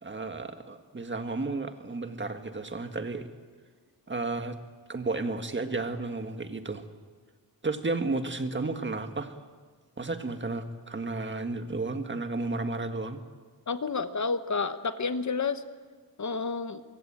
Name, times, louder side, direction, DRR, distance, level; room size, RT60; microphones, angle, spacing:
voice 1, 0.0-3.3 4.1-4.6 4.9-6.8 7.6-9.3 10.0-13.2, right 3 dB, 30° right, 7 dB, 1.8 m, -32 dB
voice 2, 13.7-15.6 16.2-16.8, left 4 dB, 45° left, 10 dB, 1.2 m, -30 dB
24.0 x 23.5 x 8.9 m, 1.5 s
wide cardioid pair, 120°, 40 cm